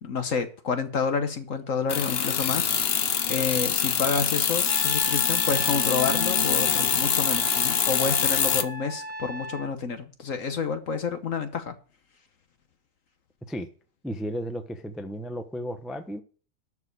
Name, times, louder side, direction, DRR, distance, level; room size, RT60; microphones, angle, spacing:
voice 1, 0.0-11.7, left 5 dB, 50° left, 8 dB, 1.1 m, -29 dB
sound 1, 1.9-8.6, left 7 dB, 65° left, 0.6 m, -24 dB
Trumpet, 4.7-9.7, right 2 dB, 30° right, 1.6 m, -37 dB
voice 2, 14.0-16.2, equal, ahead, 7 dB, 0.4 m, -34 dB
12.5 x 4.8 x 8.1 m, 0.40 s
omnidirectional pair, 2.1 m